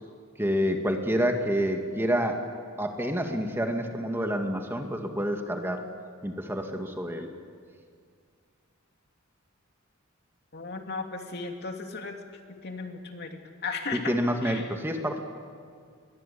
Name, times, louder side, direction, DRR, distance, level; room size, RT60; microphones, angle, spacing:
voice 1, 0.4-2.5 2.8-5.8 6.2-7.3 13.9-15.2, equal, 10° right, 4 dB, 2.0 m, -28 dB
voice 2, 10.5-12.2 12.6-14.1 14.4-14.7, left 4 dB, 50° left, 3 dB, 2.7 m, -36 dB
29.5 x 22.5 x 8.6 m, 2.1 s
head